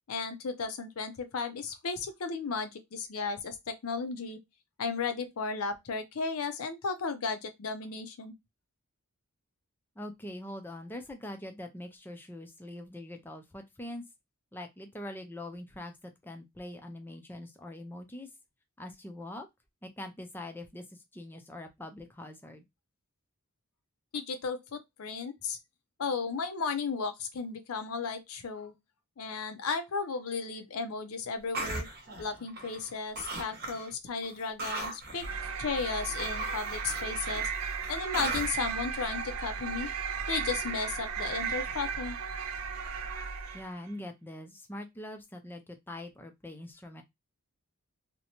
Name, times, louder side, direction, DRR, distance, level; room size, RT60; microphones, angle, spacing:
voice 1, 0.1-4.4 4.8-8.4 24.1-25.6 26.0-28.7 29.2-31.9 32.2-35.3 35.6-37.5 37.9-39.9 40.3-42.2, left 4 dB, 75° left, 0.5 m, -34 dB
voice 2, 10.0-14.0 14.5-15.9 16.2-18.3 18.8-19.5 19.8-20.8 21.1-22.6 43.5-47.0, left 1 dB, 10° left, 0.4 m, -43 dB
sound 1, 31.5-32.9 33.2-33.9 34.2-38.7, right 2 dB, 45° right, 0.9 m, -38 dB
sound 2, 35.2-43.8, right 6 dB, 70° right, 0.4 m, -35 dB
2.7 x 2.1 x 2.8 m
head